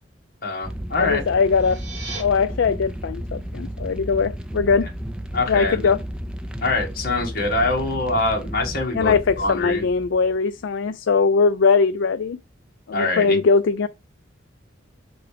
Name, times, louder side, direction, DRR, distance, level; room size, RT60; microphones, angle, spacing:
voice 1, 0.4-1.2 5.3-5.9 6.6-9.8 12.9-13.4, left 2 dB, 50° left, 1.7 m, -24 dB
sound 1, 0.6-10.7, equal, 5° right, 0.5 m, -33 dB
voice 2, 1.0-1.8 2.2-4.9 5.5-6.0 8.9-12.4 12.9-13.9, left 5 dB, 65° left, 0.4 m, -20 dB
sound 2, 1.4-2.2, right 3 dB, 35° right, 3.1 m, -36 dB
5.8 x 3.8 x 4.9 m
head